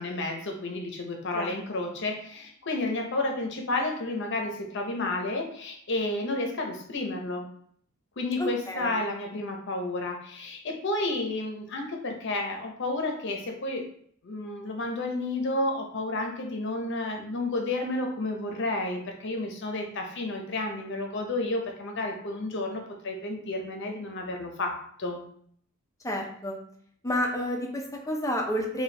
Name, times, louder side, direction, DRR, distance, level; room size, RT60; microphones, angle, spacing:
voice 1, 0.0-7.5 8.2-13.9 14.2-25.2, left 2 dB, 60° left, 3 dB, 0.7 m, -31 dB
voice 2, 1.3-1.8 8.4-9.0 26.0-26.6 27.0-28.8, equal, 15° left, 0 dB, 0.5 m, -30 dB
4.3 x 2.3 x 3.3 m, 0.62 s
head